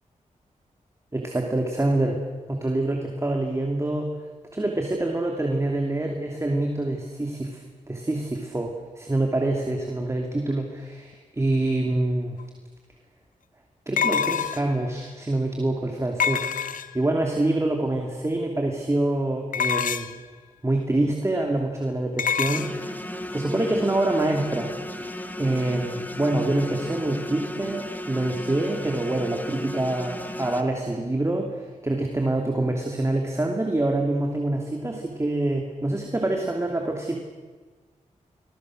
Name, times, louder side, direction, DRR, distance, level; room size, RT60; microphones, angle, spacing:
voice 1, 1.1-2.2 2.5-4.1 4.5-12.4 13.9-20.1 20.6-22.7 23.3-24.7 25.4-37.2, right 2 dB, 20° right, 2 dB, 2.8 m, -26 dB
sound 1, 12.4-12.5 14.0-14.8 16.2-17.1 19.5-20.2 22.2-22.7, left 7 dB, 80° left, 0.8 m, -25 dB
sound 2, 22.5-30.6, left 1 dB, 15° left, 2.2 m, -34 dB
28.5 x 21.0 x 6.4 m, 1.4 s
wide cardioid pair, 85°, 14 cm